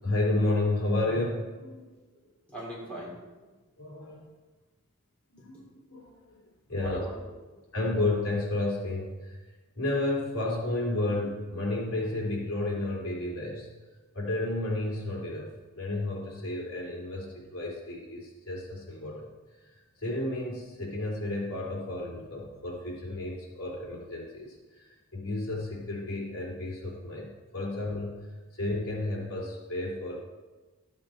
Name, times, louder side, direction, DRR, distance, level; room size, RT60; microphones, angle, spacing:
voice 1, 0.0-1.9 3.8-4.3 5.4-6.2 6.7-7.0 7.7-9.4 9.7-13.7 14.1-15.5 15.7-19.3 20.0-28.1 28.5-30.2, left 2 dB, 70° left, -2 dB, 2.9 m, -32 dB
voice 2, 1.9-3.5 6.8-7.1 7.5-7.6, right 1 dB, 5° left, -6 dB, 3.6 m, -42 dB
13.0 x 8.5 x 4.4 m, 1.2 s
head